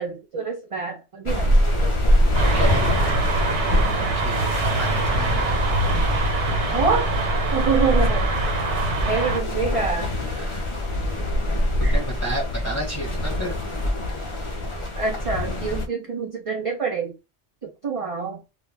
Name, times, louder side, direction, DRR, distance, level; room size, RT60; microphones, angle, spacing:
voice 1, 0.0-1.5 1.8-1.9 3.0-3.2 6.7-7.1 7.5-8.3 9.1-10.1 11.8-12.0 15.0-17.1 17.6-18.4, right 5 dB, 45° right, 0.4 m, -26 dB
sound 1, 1.3-15.9, left 1 dB, 45° left, 0.4 m, -24 dB
sound 2, 2.3-9.4, right 3 dB, 85° right, 1.1 m, -25 dB
voice 2, 2.5-3.5 3.9-5.6 10.3-10.7 11.8-13.6, equal, 15° left, 0.8 m, -32 dB
2.3 x 2.1 x 3.2 m
omnidirectional pair, 1.1 m